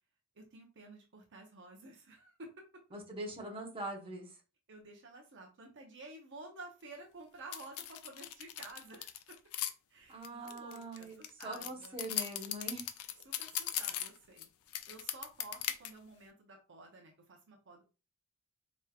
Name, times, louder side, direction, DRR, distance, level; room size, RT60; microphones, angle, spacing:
voice 1, 0.3-2.7 4.7-9.4 9.9-12.0 13.2-14.5 14.9-17.8, right 2 dB, 55° right, 1 dB, 0.8 m, -52 dB
voice 2, 2.9-4.3 10.1-12.9, right 1 dB, 25° right, -1 dB, 1.0 m, -43 dB
sound 1, 7.5-9.7 10.2-14.5 14.7-15.9, left 11 dB, 75° left, 0.5 m, -38 dB
4.6 x 3.1 x 2.4 m, 0.32 s
head